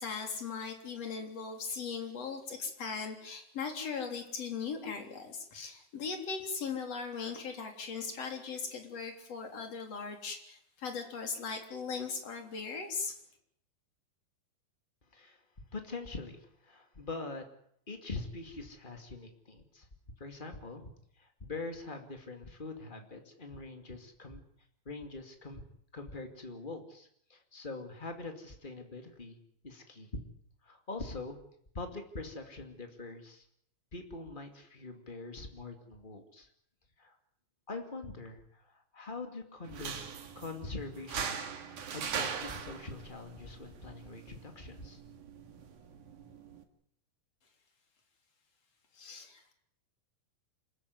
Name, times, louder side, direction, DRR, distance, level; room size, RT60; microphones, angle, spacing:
voice 1, 0.0-13.1 48.9-49.5, left 5 dB, 35° left, 4 dB, 4.1 m, -39 dB
voice 2, 15.7-17.4 17.9-19.9 20.2-20.9 21.2-24.4 24.8-25.6 25.9-29.4 29.6-30.2 30.6-31.4 31.7-33.4 33.9-36.5 37.0-37.1 37.7-40.1 40.3-45.0, left 3 dB, 70° left, 5 dB, 0.4 m, -43 dB
sound 1, 39.7-46.6, right 7 dB, 50° right, 3.0 m, -41 dB
27.5 x 14.5 x 9.6 m, 0.70 s
omnidirectional pair, 5.5 m